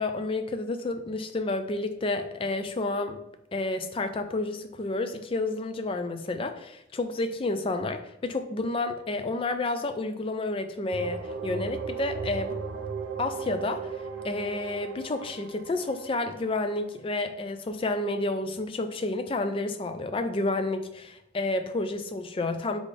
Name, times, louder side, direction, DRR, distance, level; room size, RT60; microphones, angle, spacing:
voice 1, 0.0-3.2 3.5-12.5 13.2-13.9 14.2-22.8, left 2 dB, 30° left, 8 dB, 0.3 m, -30 dB
sound 1, 10.9-16.6, right 5 dB, 85° right, 0.5 m, -36 dB
3.8 x 3.7 x 3.3 m, 0.80 s
head